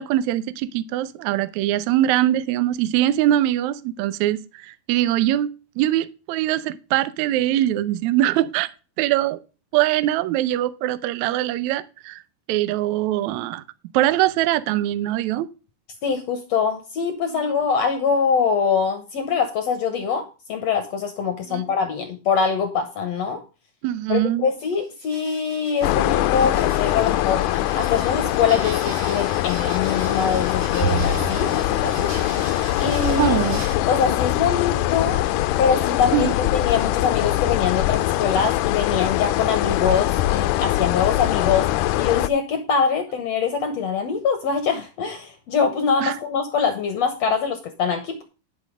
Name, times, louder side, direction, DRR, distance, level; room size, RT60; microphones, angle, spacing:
voice 1, 0.0-5.5 5.8-8.7 9.0-9.4 9.7-12.2 12.5-13.6 13.9-15.5 17.3-17.6 21.5-21.6 23.8-24.5 33.2-33.6 36.1-36.3 46.0-46.2, right 13 dB, 90° right, 1.6 m, -22 dB
voice 2, 16.0-23.4 24.1-27.5 27.7-32.1 32.8-33.4 33.7-35.2 35.6-41.7 42.0-48.2, left 6 dB, 65° left, 1.7 m, -23 dB
sound 1, 24.6-33.8, right 7 dB, 65° right, 2.7 m, -41 dB
sound 2, 25.8-42.3, left 15 dB, 85° left, 1.8 m, -22 dB
Bowed string instrument, 30.8-34.2, right 8 dB, 50° right, 6.6 m, -32 dB
11.0 x 6.2 x 5.0 m
omnidirectional pair, 4.2 m